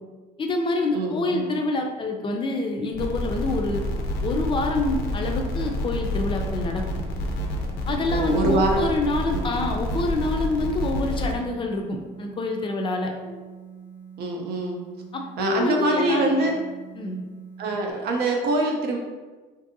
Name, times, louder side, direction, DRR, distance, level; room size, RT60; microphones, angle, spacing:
voice 1, 0.4-3.8 4.2-7.0 7.9-13.1 15.1-16.5 17.0-17.2, left 2 dB, 30° left, 2 dB, 0.4 m, -26 dB
voice 2, 0.9-1.5 8.1-8.8 9.3-9.6 13.2-13.4 14.2-14.8 15.4-16.6 17.6-19.0, right 2 dB, 70° right, 1 dB, 0.6 m, -25 dB
sound 1, 2.9-11.3, left 1 dB, 85° left, 0.5 m, -28 dB
sound 2, 6.5-17.9, right 7 dB, 10° right, 0.8 m, -44 dB
2.6 x 2.6 x 2.6 m, 1.3 s
cardioid pair, 110°, 17 cm